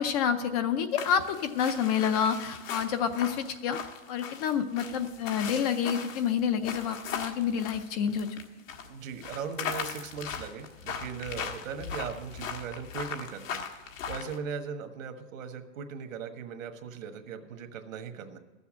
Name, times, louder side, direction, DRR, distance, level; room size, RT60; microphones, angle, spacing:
voice 1, 0.0-3.8 4.1-8.3, left 8 dB, 30° left, 9 dB, 0.5 m, -28 dB
sound 1, 1.0-8.4 8.7-14.4, left 7 dB, 70° left, 1.6 m, -38 dB
voice 2, 8.9-13.6 14.1-18.4, right 6 dB, 70° right, 7 dB, 1.4 m, -39 dB
12.5 x 7.1 x 7.4 m, 1.3 s
hypercardioid pair, 155°, 40 cm